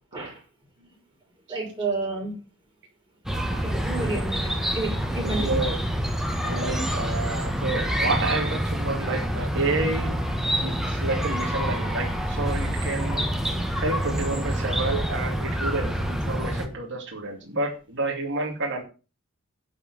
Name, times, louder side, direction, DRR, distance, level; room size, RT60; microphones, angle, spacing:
voice 1, 1.5-2.3 3.6-5.6 6.7-6.9, right 3 dB, 25° right, -1 dB, 5.4 m, -31 dB
Chirp tweet, 3.3-16.7, equal, ahead, 1.5 m, -27 dB
voice 2, 5.2-5.8 6.4-10.2 10.6-13.3 13.8-18.8, right 2 dB, 55° right, 0 dB, 2.5 m, -29 dB
11.5 x 5.0 x 7.7 m, 0.33 s
head